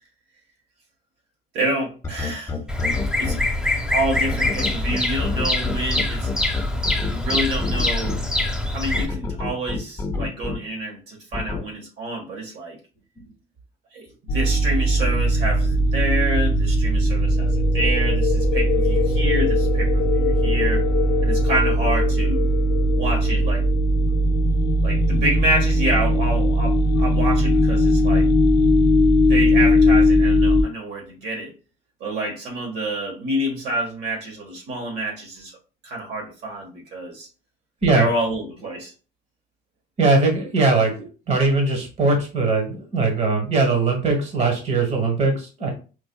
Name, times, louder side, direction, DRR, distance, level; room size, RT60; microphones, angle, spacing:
voice 1, 1.5-2.5 3.2-3.4 3.9-6.3 6.7-6.8 7.1-8.2 8.7-12.8 13.9-14.0 14.3-20.8 21.2-22.5 22.9-23.6 24.8-28.3 29.3-31.5 32.0-35.5 35.8-37.3 37.9-38.9, right 1 dB, 80° right, -1 dB, 1.4 m, -28 dB
sound 1, 2.0-3.3 4.1-8.1 8.9-10.5 11.3-11.6, left 4 dB, 15° left, 0.6 m, -27 dB
Bird vocalization bird call bird song, 2.7-9.1, left 1 dB, 5° right, 0.9 m, -24 dB
sound 2, 14.3-30.6, equal, 65° left, 0.5 m, -19 dB
voice 2, 40.0-45.7, right 3 dB, 40° right, 2 dB, 1.2 m, -20 dB
4.6 x 2.5 x 2.2 m, 0.34 s
cardioid pair, 110°, 17 cm